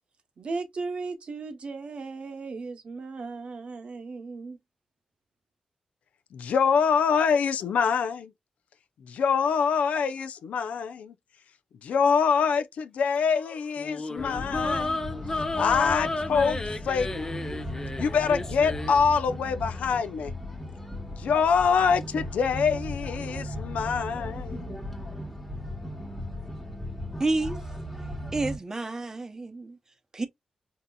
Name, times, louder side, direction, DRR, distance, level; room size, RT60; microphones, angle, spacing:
voice 1, 0.4-4.6, right 4 dB, 55° right, 0.8 m, -36 dB
voice 2, 6.3-8.3 9.0-11.1 11.8-15.0 15.5-17.3 18.0-20.3 21.1-24.8, left 6 dB, 90° left, 0.4 m, -25 dB
sound 1, 13.8-19.0, left 2 dB, 25° left, 0.5 m, -32 dB
sound 2, 14.2-28.6, left 1 dB, 10° left, 1.1 m, -37 dB
voice 3, 27.2-27.6 28.3-29.8 30.1-30.3, right 2 dB, 25° right, 0.6 m, -29 dB
3.9 x 2.7 x 2.2 m
wide cardioid pair, 110°, 2 cm